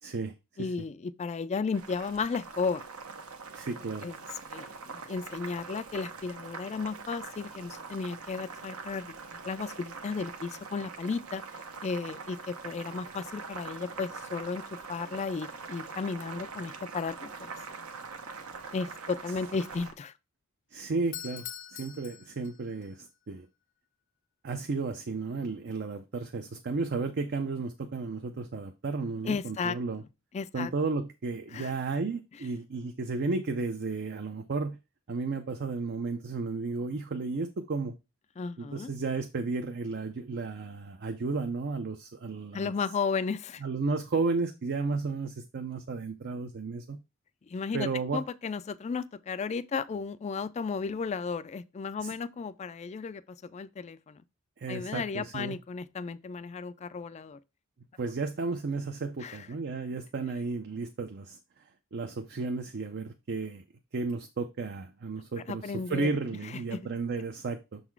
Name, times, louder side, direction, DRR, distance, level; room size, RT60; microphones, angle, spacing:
voice 1, 0.0-0.3 0.6-0.7 3.5-4.1 20.7-21.5 21.7-23.5 24.4-30.0 30.5-34.8 35.1-37.9 38.6-42.7 43.6-47.0 47.7-48.2 52.0-52.1 54.6-55.6 58.0-63.6 63.9-67.8, right 3 dB, 50° right, 0.5 m, -33 dB
voice 2, 0.6-2.8 4.0-4.1 4.5-11.4 11.8-17.5 18.7-20.1 29.2-29.8 30.3-30.7 31.5-31.7 38.4-38.9 42.5-43.6 47.5-54.2 54.7-57.4 59.2-59.5 65.5-66.1 66.4-66.8, left 5 dB, 30° left, 0.3 m, -34 dB
Boiling, 1.7-19.9, right 4 dB, 80° right, 1.0 m, -43 dB
Doorbell, 21.0-22.9, left 11 dB, 60° left, 0.7 m, -43 dB
6.3 x 4.0 x 4.5 m
head